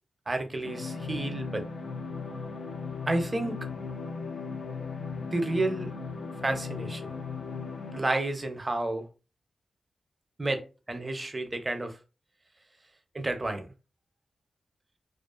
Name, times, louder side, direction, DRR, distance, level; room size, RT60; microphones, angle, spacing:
voice 1, 0.3-1.7 3.1-3.7 5.3-5.9 6.4-7.2 7.9-9.1 10.4-10.6 10.9-12.0 13.1-13.7, right 2 dB, 30° right, 0.5 m, -30 dB
sound 1, 0.6-8.0, left 4 dB, 75° left, 0.4 m, -37 dB
2.4 x 2.3 x 2.3 m
wide cardioid pair, 95°, 0 cm